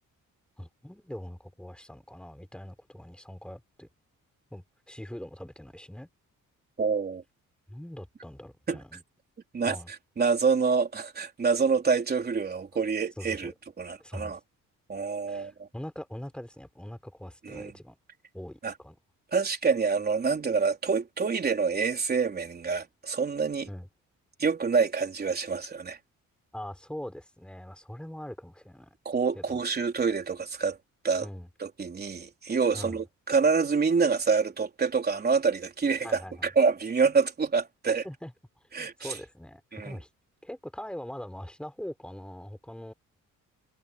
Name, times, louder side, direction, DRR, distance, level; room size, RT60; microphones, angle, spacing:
voice 1, 0.6-3.9 4.5-6.1 7.7-9.0 9.7-9.9 13.2-13.5 14.0-14.3 15.3-18.0 18.3-18.9 23.7-23.9 26.5-28.9 29.4-29.6 31.2-31.5 32.7-33.0 36.0-36.5 37.9-38.3 38.8-40.1 40.4-42.9, equal, 5° left, 4.5 m, -42 dB
voice 2, 6.8-7.2 8.7-8.8 9.5-9.8 10.2-14.4 14.9-15.7 17.4-17.7 18.6-18.7 19.3-23.7 24.4-26.0 29.1-30.8 31.0-31.3 31.6-38.0 38.7-39.2 39.7-40.0, right 5 dB, 30° right, 3.7 m, -27 dB
cardioid pair, 145°, 32 cm